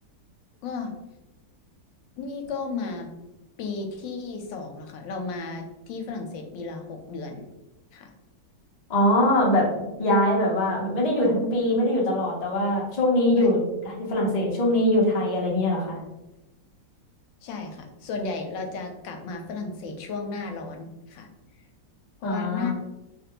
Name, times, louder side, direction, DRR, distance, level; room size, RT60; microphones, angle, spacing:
voice 1, 0.6-0.9 2.2-3.1 3.6-7.5 7.9-8.1 13.3-13.5 17.4-21.3 22.2-22.7, left 4 dB, 85° left, 4 dB, 1.3 m, -34 dB
voice 2, 8.9-13.6 13.8-16.0 22.2-22.7, left 1 dB, 60° left, -3 dB, 0.4 m, -22 dB
3.1 x 2.5 x 2.8 m, 0.96 s
omnidirectional pair, 2.0 m